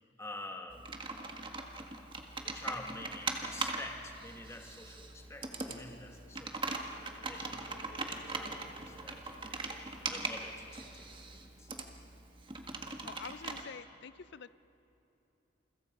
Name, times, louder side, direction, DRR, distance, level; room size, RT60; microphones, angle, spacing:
voice 1, 0.2-0.9 2.4-8.0 8.3-9.2 10.0-11.7, left 2 dB, 15° left, 2 dB, 2.1 m, -48 dB
Computer keyboard, 0.7-13.6, right 3 dB, 25° right, 1.7 m, -41 dB
sound 1, 6.3-12.2, right 1 dB, 50° right, 3.0 m, -58 dB
voice 2, 13.0-14.5, left 6 dB, 65° left, 16 dB, 0.5 m, -47 dB
29.0 x 23.5 x 5.3 m, 2.9 s
head